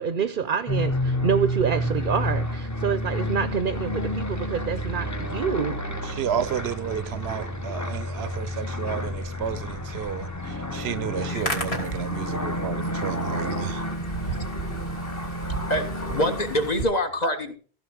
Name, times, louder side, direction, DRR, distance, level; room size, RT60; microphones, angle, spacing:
voice 1, 0.0-6.2 8.1-8.2, right 6 dB, 55° right, 0.9 m, -27 dB
sound 1, 0.7-16.7, equal, 15° left, 1.1 m, -30 dB
voice 2, 6.1-13.9, right 8 dB, 75° right, 1.0 m, -31 dB
Hands, 11.2-16.8, right 1 dB, 75° left, 3.5 m, -35 dB
voice 3, 11.9-12.2 13.9-14.1 14.4-14.5 15.5-17.5, left 1 dB, 40° left, 1.7 m, -27 dB
15.0 x 5.7 x 6.3 m
omnidirectional pair, 1.1 m